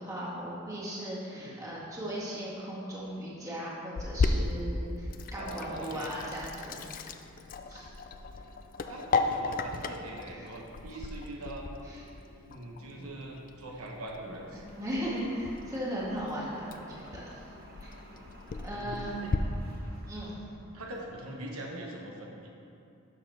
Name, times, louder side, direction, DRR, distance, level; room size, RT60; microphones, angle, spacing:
voice 1, 0.0-7.0 7.7-7.9 10.9-11.0 11.8-12.0 14.5-17.4 17.8-17.9 18.6-19.1 20.1-20.3, equal, 15° right, -8 dB, 1.8 m, -37 dB
Sink (filling or washing), 4.0-19.4, left 3 dB, 40° left, 0.3 m, -36 dB
voice 2, 5.4-6.1 8.9-11.7 12.4-14.6 18.8-19.3 20.7-22.5, right 1 dB, 85° right, -1 dB, 1.0 m, -42 dB
sound 1, 14.7-21.4, equal, 45° right, 0.9 m, -54 dB
12.0 x 6.4 x 3.3 m, 2.6 s
head